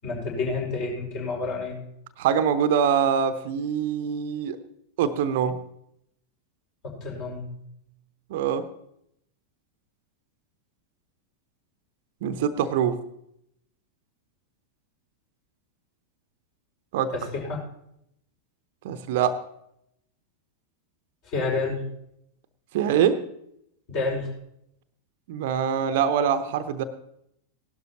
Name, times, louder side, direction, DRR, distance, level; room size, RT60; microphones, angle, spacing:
voice 1, 0.0-1.8 6.8-7.4 17.1-17.6 21.3-21.8 23.9-24.3, left 3 dB, 45° left, -2 dB, 5.3 m, -29 dB
voice 2, 2.2-4.6 5.0-5.6 8.3-8.6 12.2-13.0 16.9-17.1 18.8-19.4 22.7-23.2 25.3-26.8, right 8 dB, 50° right, 11 dB, 0.8 m, -24 dB
17.5 x 12.0 x 3.0 m, 0.76 s
figure-of-eight pair, 90°, 0 cm